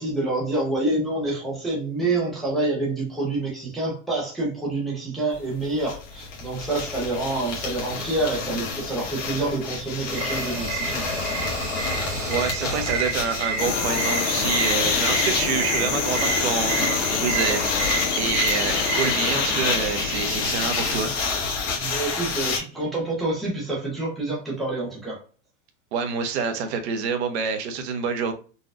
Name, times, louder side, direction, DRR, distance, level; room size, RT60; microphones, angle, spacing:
voice 1, 0.0-11.4 21.8-25.2, right 2 dB, ahead, 0.4 m, -27 dB
sound 1, 5.3-5.4 5.6-22.6, left 4 dB, 25° left, 0.9 m, -29 dB
sound 2, 10.1-20.2, right 5 dB, 80° right, 1.3 m, -30 dB
voice 2, 12.2-21.1 25.9-28.3, right 6 dB, 55° right, 0.8 m, -27 dB
sound 3, 13.6-21.1, left 6 dB, 65° left, 0.9 m, -27 dB
4.0 x 2.3 x 2.4 m
supercardioid pair, 165°, 38 cm